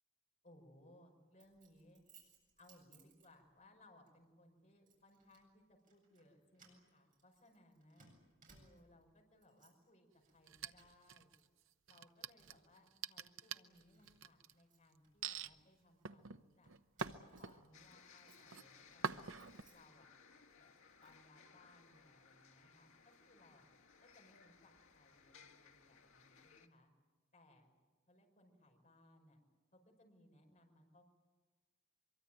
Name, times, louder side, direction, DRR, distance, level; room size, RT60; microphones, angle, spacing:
voice 1, 0.4-2.0 2.6-8.1 8.5-11.3 11.9-16.7 17.1-19.4 19.7-20.1 20.5-23.7 24.0-26.9 27.3-27.8 28.1-29.4 29.7-31.0, left 1 dB, 35° left, 1 dB, 5.7 m, -66 dB
Keys jangling, 1.4-3.7 4.1-4.3 4.9-5.5 5.8-6.3 6.5-9.0 9.3-9.9 10.2-11.4 11.7-12.8 13.3-13.4 13.7-16.0 16.6-20.2 20.5-21.2, right 4 dB, 40° right, 7.8 m, -68 dB
sound 1, 10.5-11.4 11.9-14.5 15.2-15.5 16.1-17.9 18.2-18.6 19.0-19.6, right 6 dB, 75° right, 0.8 m, -45 dB
sound 2, 17.7-26.7, left 5 dB, 80° left, 2.0 m, -64 dB
24.0 x 23.5 x 9.1 m, 1.3 s
head